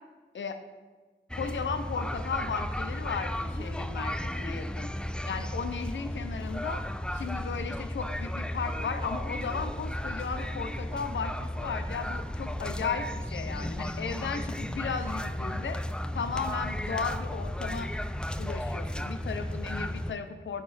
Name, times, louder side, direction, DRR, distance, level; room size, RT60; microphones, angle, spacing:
voice 1, 1.3-4.9 5.2-6.8 7.1-15.8 16.1-17.9 18.4-20.6, left 5 dB, 85° left, 9 dB, 0.5 m, -35 dB
sound 1, 1.3-20.1, left 1 dB, 5° left, 0.3 m, -34 dB
6.9 x 5.8 x 3.3 m, 1.3 s
cardioid pair, 45°, 19 cm